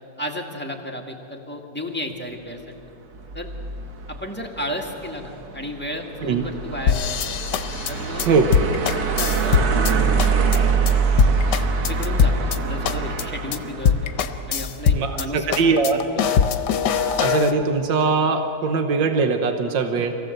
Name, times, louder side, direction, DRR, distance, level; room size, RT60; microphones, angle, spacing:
voice 1, 0.2-2.7 3.3-3.5 4.1-7.3 7.9-8.3 9.0-10.0 11.8-14.1 14.5-16.3, left 1 dB, 5° left, 1 dB, 1.7 m, -33 dB
sound 1, 3.1-15.3, right 5 dB, 60° right, 1.7 m, -25 dB
sound 2, 6.9-9.9 10.2-10.6 10.9-11.0 11.2-12.6 12.8-13.2 13.5-13.6 13.8-15.2 15.5-17.5, left 7 dB, 70° left, 1.5 m, -21 dB
voice 2, 14.9-16.0 17.2-20.1, right 4 dB, 90° right, 6 dB, 1.8 m, -21 dB
24.5 x 17.5 x 7.9 m, 3.0 s
omnidirectional pair, 2.0 m